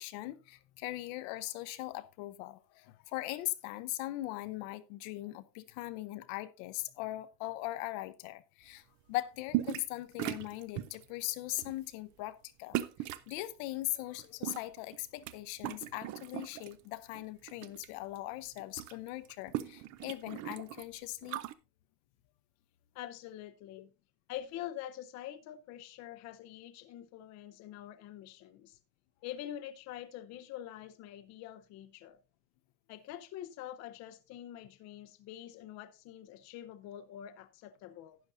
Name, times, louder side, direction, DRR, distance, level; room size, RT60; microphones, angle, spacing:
voice 1, 0.0-12.8 13.3-21.4, left 17 dB, 70° left, 0.8 m, -40 dB
sound 1, 9.5-9.9 10.2-11.0 11.6-11.8 12.7-13.3 14.2-15.3 15.6-16.7 17.1-17.9 18.1-18.2 18.5-21.5, right 14 dB, 40° right, 0.5 m, -38 dB
voice 2, 22.9-23.9 24.3-28.8 29.2-32.2 32.9-38.2, left 12 dB, 40° left, 0.6 m, -45 dB
12.0 x 9.5 x 2.6 m
cardioid pair, 175°, 44 cm